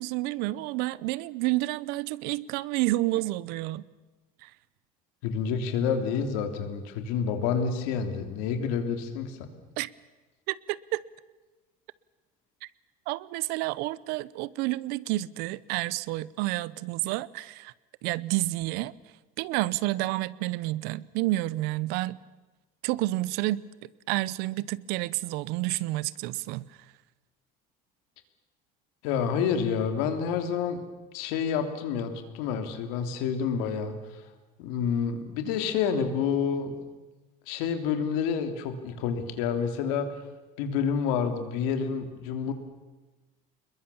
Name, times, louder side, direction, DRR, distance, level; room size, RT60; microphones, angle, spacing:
voice 1, 0.0-3.9 4.4-4.5 9.8-9.9 10.5-11.0 13.1-17.7 18.0-18.9 19.4-22.2 22.8-23.6 24.1-26.7, right 18 dB, 65° right, 0.8 m, -29 dB
voice 2, 5.2-9.4 29.0-30.8 31.1-34.2 34.6-36.8 37.5-40.1 40.6-42.5, left 6 dB, 80° left, 3.2 m, -28 dB
27.0 x 21.5 x 7.1 m
cardioid pair, 165°, 17 cm